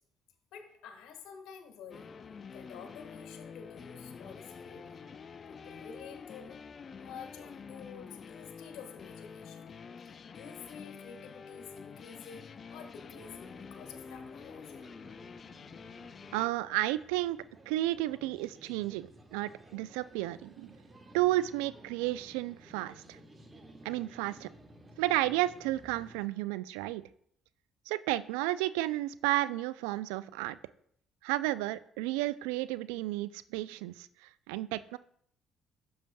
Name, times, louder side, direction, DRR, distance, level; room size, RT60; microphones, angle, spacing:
voice 1, 0.5-2.1 2.5-9.7 10.3-14.8, left 6 dB, 65° left, 5 dB, 1.5 m, -50 dB
sound 1, 1.9-16.5, left 5 dB, 45° left, 0.4 m, -48 dB
sound 2, 13.0-26.3, right 1 dB, 25° right, 1.4 m, -56 dB
voice 2, 16.3-17.4 17.7-20.8 21.1-23.2 23.8-24.5 25.0-27.0 27.9-30.6 31.2-34.1 34.5-35.0, right 16 dB, 75° right, 15 dB, 0.3 m, -32 dB
12.0 x 6.8 x 2.2 m, 0.67 s
hypercardioid pair, 50°, 0 cm